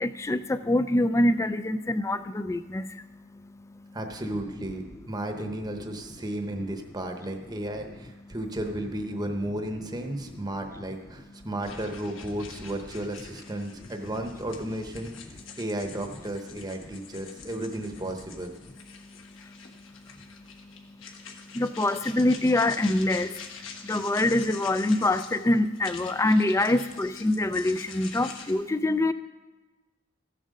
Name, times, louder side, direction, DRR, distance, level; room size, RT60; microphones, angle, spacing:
voice 1, 0.0-2.8 21.6-23.3 23.9-29.1, left 1 dB, 15° left, 12 dB, 0.3 m, -24 dB
voice 2, 3.9-18.5, right 1 dB, 20° right, 5 dB, 0.8 m, -34 dB
sound 1, 11.6-28.5, left 6 dB, 65° left, 1.3 m, -46 dB
14.5 x 7.5 x 5.3 m, 1.2 s
head